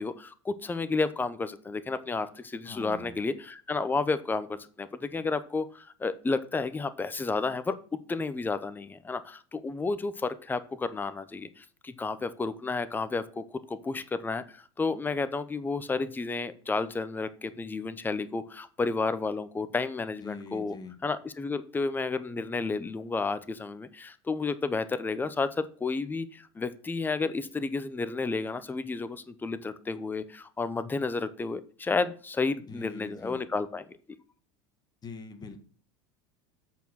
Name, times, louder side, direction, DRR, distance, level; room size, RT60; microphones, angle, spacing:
voice 1, 0.0-7.8 8.1-20.8 21.0-33.8, left 3 dB, 15° left, 13 dB, 0.7 m, -31 dB
voice 2, 2.6-3.2 20.2-21.0 32.7-33.4 35.0-35.6, left 4 dB, 30° left, 7 dB, 1.7 m, -43 dB
8.0 x 4.6 x 6.3 m, 0.42 s
hypercardioid pair, 95°, 14 cm